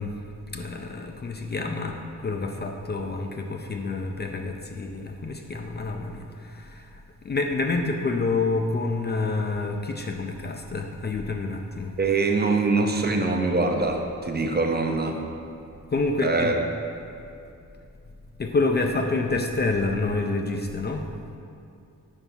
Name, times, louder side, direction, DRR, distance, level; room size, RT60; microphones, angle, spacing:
voice 1, 0.0-12.0 15.9-16.5 18.4-21.1, left 3 dB, 30° left, 3 dB, 0.4 m, -28 dB
voice 2, 12.0-15.2 16.2-16.7, right 3 dB, 30° right, 3 dB, 0.5 m, -23 dB
4.6 x 4.5 x 5.3 m, 2.5 s
wide cardioid pair, 95°, 33 cm